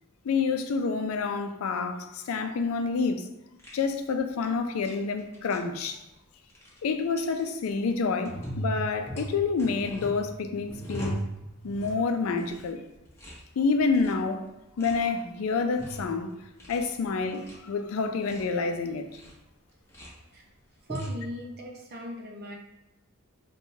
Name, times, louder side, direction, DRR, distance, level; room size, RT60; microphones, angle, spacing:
voice 1, 0.2-3.3 3.7-6.0 6.8-11.2 11.6-12.8 13.6-14.5 14.8-16.3 16.7-19.1, left 4 dB, 70° left, 6 dB, 0.4 m, -28 dB
sound 1, 3.6-3.7 4.8-4.9 5.2-5.6 6.5-6.8 7.2-7.4 8.2-12.0 12.3-12.6 12.9-13.4 13.8-14.2 14.8-15.0 15.5-16.1 16.4-16.8 17.2-17.5 18.0-18.5 19.1-19.3 19.7-20.1 20.7-21.2, right 1 dB, 15° left, 1.0 m, -37 dB
voice 2, 20.9-22.6, equal, 50° right, 0 dB, 0.7 m, -39 dB
4.5 x 2.2 x 2.7 m, 0.93 s
head